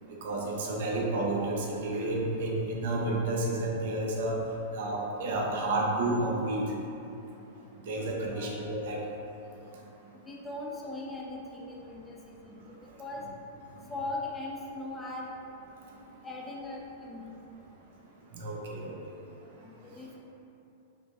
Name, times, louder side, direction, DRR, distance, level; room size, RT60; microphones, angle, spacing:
voice 1, 0.2-4.4 4.7-6.6 7.9-9.0 18.3-19.0, right 2 dB, 65° right, -2 dB, 0.7 m, -30 dB
voice 2, 8.0-8.6 10.3-12.6 13.0-13.2 13.9-15.3 16.2-17.3 19.6-20.2, left 2 dB, 15° left, -3 dB, 0.7 m, -40 dB
5.1 x 3.1 x 2.4 m, 2.9 s
hypercardioid pair, 105°, 0 cm